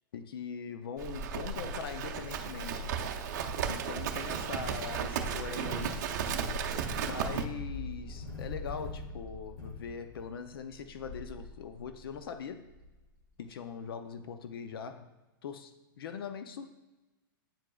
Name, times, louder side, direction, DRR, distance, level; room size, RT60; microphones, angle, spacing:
voice 1, 0.1-2.9 3.7-6.0 7.1-12.7 13.4-15.1 15.4-16.7, left 6 dB, 90° left, 9 dB, 0.5 m, -41 dB
Livestock farm animals working animals, 1.0-7.5, right 6 dB, 50° right, 0.6 m, -34 dB
sound 1, 3.3-13.5, left 3 dB, 50° left, 2.1 m, -45 dB
8.8 x 4.8 x 2.3 m, 1.1 s
supercardioid pair, 170°, 12 cm